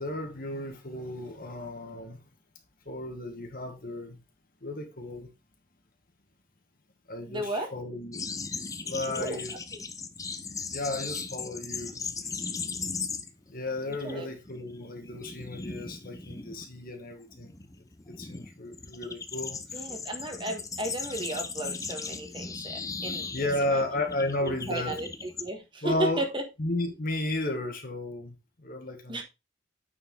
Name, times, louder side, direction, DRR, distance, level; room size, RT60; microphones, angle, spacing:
voice 1, 0.0-2.2 2.8-4.2 4.6-5.3 7.1-9.5 10.7-12.2 13.5-17.5 18.1-19.8 23.3-24.9 25.8-26.3 26.6-29.2, left 1 dB, 45° left, 1.6 m, -33 dB
voice 2, 7.3-7.7 9.1-9.4 9.7-9.8 14.0-14.3 19.7-23.3 23.7-23.8 24.4-26.4 29.1-29.2, right 1 dB, 25° right, 1.4 m, -34 dB
sound 1, 8.1-13.5 13.8-14.1 14.5-25.5, left 4 dB, 15° left, 0.5 m, -38 dB
8.8 x 4.6 x 3.8 m
head